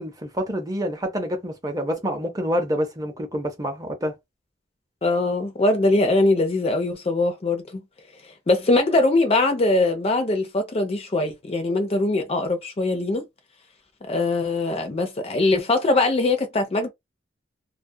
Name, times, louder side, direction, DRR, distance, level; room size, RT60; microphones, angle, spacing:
voice 1, 0.0-4.1, equal, 20° right, 0.6 m, -27 dB
voice 2, 5.0-7.8 8.5-13.2 14.1-16.9, left 2 dB, 30° left, 0.4 m, -22 dB
2.2 x 2.1 x 2.6 m
head